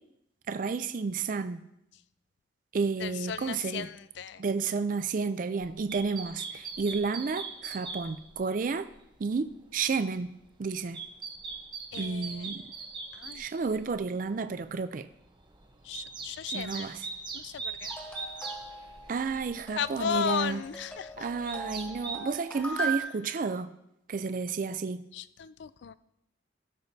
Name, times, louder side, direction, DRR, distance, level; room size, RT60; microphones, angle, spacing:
voice 1, 0.5-1.6 2.7-3.9 4.4-8.9 9.2-10.3 10.6-11.0 11.9-12.6 13.3-15.1 16.5-17.1 19.1-20.6 21.2-23.7 24.1-25.0, right 4 dB, 45° right, 11 dB, 0.4 m, -31 dB
voice 2, 3.0-4.4 11.9-12.5 13.1-13.4 15.8-16.9 17.3-17.9 19.7-21.3 22.7-22.9 25.1-25.9, left 8 dB, 65° left, 16 dB, 0.4 m, -35 dB
sound 1, 5.6-8.5 8.9-9.6 10.1-14.0 14.4-14.7 15.1-22.2, right 4 dB, 25° right, 0.8 m, -41 dB
sound 2, 17.9-23.0, right 3 dB, 10° left, 1.9 m, -39 dB
16.0 x 7.0 x 2.7 m, 0.81 s
head